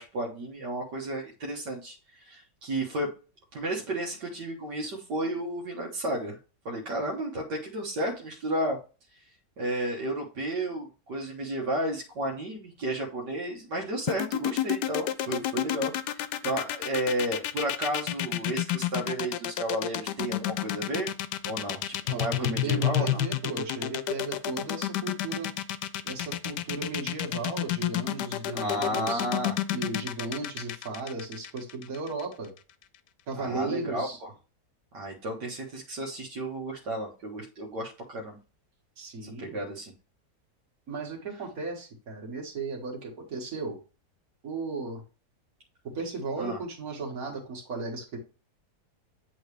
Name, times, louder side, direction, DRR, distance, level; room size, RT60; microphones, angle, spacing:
voice 1, 0.0-3.1 3.5-6.4 6.7-8.8 9.6-21.1 21.4-23.2 28.5-29.5 33.4-34.3 34.9-38.4 39.2-39.9 46.4-46.6, right 1 dB, 80° right, -2 dB, 1.9 m, -32 dB
sound 1, 14.1-32.2, left 12 dB, 80° left, 1.2 m, -30 dB
voice 2, 22.1-25.5 26.0-29.2 29.7-32.5 33.3-34.2 39.0-39.6 40.9-43.8 44.4-45.0 45.8-48.2, right 3 dB, 60° right, -1 dB, 2.3 m, -35 dB
8.6 x 3.9 x 3.2 m, 0.33 s
omnidirectional pair, 1.8 m